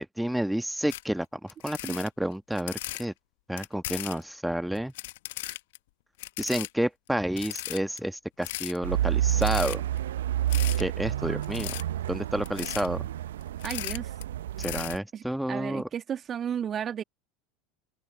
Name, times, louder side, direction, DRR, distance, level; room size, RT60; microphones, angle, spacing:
voice 1, 0.0-3.1 3.5-4.9 6.4-9.8 10.8-11.8 12.1-13.1 14.6-15.9, right 1 dB, ahead, 1.4 m, -30 dB
sound 1, 0.9-1.0 1.5-3.0 3.6-4.2 4.7-5.8 6.2-6.7 7.1-7.2 7.4-8.0 8.4-8.8 9.3-10.0 10.5-10.8 11.4-11.8 12.4-12.9 13.4-14.2 14.6-15.0, left 19 dB, 65° left, 1.2 m, -37 dB
sound 2, 8.8-15.0, right 12 dB, 70° right, 0.6 m, -29 dB
voice 2, 13.6-14.1 15.1-15.2 15.5-17.0, right 8 dB, 35° right, 1.9 m, -33 dB
open air
figure-of-eight pair, 75°, 0 cm